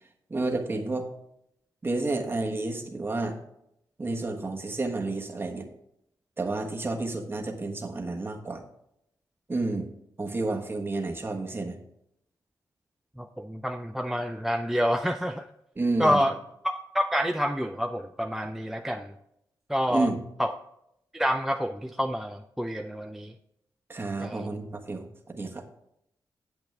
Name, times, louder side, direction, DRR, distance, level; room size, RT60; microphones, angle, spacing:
voice 1, 0.3-1.1 1.8-3.4 4.0-5.7 6.4-8.6 9.5-9.9 10.2-11.8 15.8-16.2 19.9-20.2 23.9-25.6, right 2 dB, 30° right, 2 dB, 1.4 m, -30 dB
voice 2, 13.2-15.5 16.0-16.4 16.6-19.1 19.7-20.1 20.4-20.5 21.1-23.3 24.2-24.5, equal, 5° right, 5 dB, 0.4 m, -28 dB
8.9 x 7.8 x 3.4 m, 0.79 s
cardioid pair, 80°, 8 cm